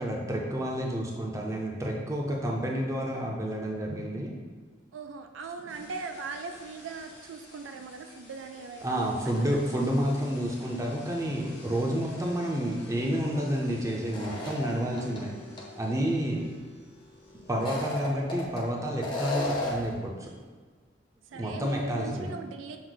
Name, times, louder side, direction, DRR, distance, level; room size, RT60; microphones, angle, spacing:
voice 1, 0.0-4.3 8.8-15.3 15.8-16.5 17.5-20.3 21.4-22.3, equal, 15° right, -1 dB, 0.5 m, -30 dB
voice 2, 4.9-9.0 9.5-9.6 16.2-16.5 21.3-22.8, right 4 dB, 85° right, 6 dB, 0.4 m, -40 dB
sound 1, 5.7-20.2, left 1 dB, 65° left, 1.1 m, -50 dB
sound 2, 14.1-15.2 15.6-15.7 17.5-18.6 19.0-19.9, left 1 dB, 25° left, 0.7 m, -33 dB
6.2 x 2.1 x 3.9 m, 1.5 s
head